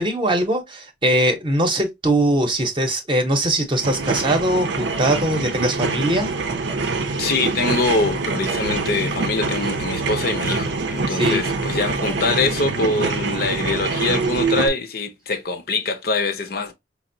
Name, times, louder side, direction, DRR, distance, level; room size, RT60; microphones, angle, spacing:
voice 1, 0.0-6.3 11.1-11.4, right 1 dB, 30° right, 0.7 m, -21 dB
sound 1, 3.7-14.7, right 3 dB, 85° right, 0.5 m, -24 dB
voice 2, 7.2-16.7, left 3 dB, 60° left, 0.6 m, -24 dB
5.1 x 2.0 x 2.6 m
head